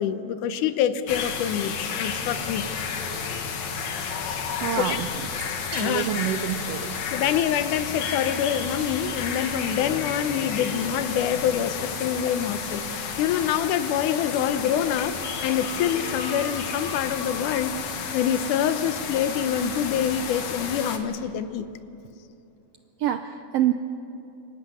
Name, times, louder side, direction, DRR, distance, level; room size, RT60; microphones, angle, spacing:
voice 1, 0.0-2.7 4.8-5.0 5.7-6.1 7.1-15.2 15.4-17.7 18.1-21.7, left 9 dB, 90° left, 11 dB, 2.4 m, -26 dB
sound 1, 1.1-21.0, left 6 dB, 70° left, 2.7 m, -32 dB
sound 2, 2.3-10.5, right 3 dB, 55° right, 3.5 m, -48 dB
voice 2, 4.6-5.2 5.8-7.0 23.0-23.7, right 11 dB, 85° right, 8 dB, 1.4 m, -26 dB
25.0 x 14.5 x 9.5 m, 2.8 s
omnidirectional pair, 3.5 m